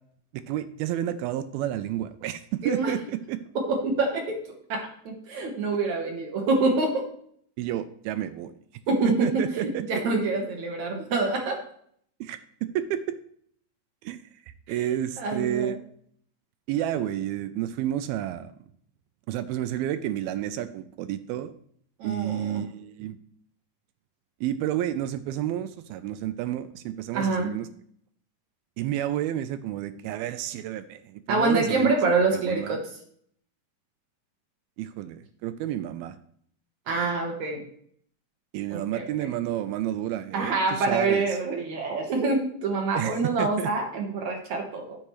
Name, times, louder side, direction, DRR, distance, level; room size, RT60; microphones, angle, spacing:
voice 1, 0.3-3.4 7.6-8.5 9.2-10.0 12.2-13.2 14.0-14.2 14.7-15.8 16.7-18.5 19.3-21.5 22.0-23.2 24.4-27.7 28.8-32.0 32.3-32.8 34.8-36.2 38.5-41.3 42.9-43.7, right 12 dB, 80° right, 11 dB, 2.3 m, -30 dB
voice 2, 3.6-4.4 4.7-7.0 8.9-11.6 14.7-14.8 15.2-15.8 22.0-22.6 27.1-27.5 31.3-32.8 36.9-37.6 38.7-39.3 40.3-45.0, right 3 dB, 60° right, 2 dB, 2.2 m, -26 dB
10.0 x 8.5 x 3.1 m, 0.62 s
omnidirectional pair, 4.7 m